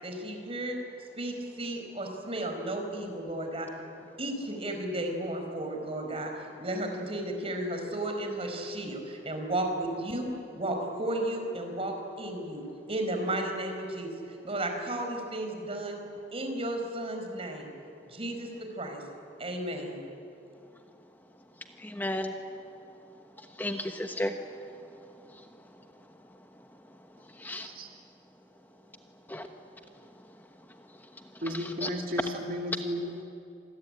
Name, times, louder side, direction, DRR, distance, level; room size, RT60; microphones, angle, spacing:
voice 1, 0.0-0.8 1.2-3.7 4.2-6.3 6.6-12.6 12.9-14.1 14.4-16.0 16.3-17.7 18.1-19.0 19.4-20.1, right 1 dB, 35° right, 4 dB, 4.9 m, -33 dB
voice 2, 21.8-22.3 23.4-26.0 26.3-27.7 29.3-29.5 30.1-30.5 30.8-31.9, left 1 dB, 10° left, 5 dB, 1.1 m, -38 dB
voice 3, 31.4-33.2, equal, 50° right, 2 dB, 2.4 m, -34 dB
27.0 x 21.0 x 9.9 m, 2.8 s
head